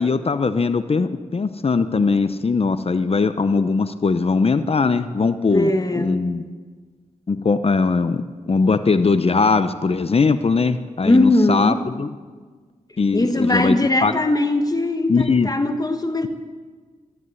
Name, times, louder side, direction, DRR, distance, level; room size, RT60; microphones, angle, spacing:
voice 1, 0.0-6.4 7.3-12.1 13.0-13.8 14.0-14.1 15.1-15.5, left 4 dB, 45° left, 11 dB, 0.7 m, -20 dB
voice 2, 5.5-6.3 11.0-11.8 13.1-16.3, left 2 dB, 25° left, 7 dB, 1.3 m, -20 dB
13.5 x 11.0 x 9.5 m, 1.5 s
cardioid pair, 65°, 14 cm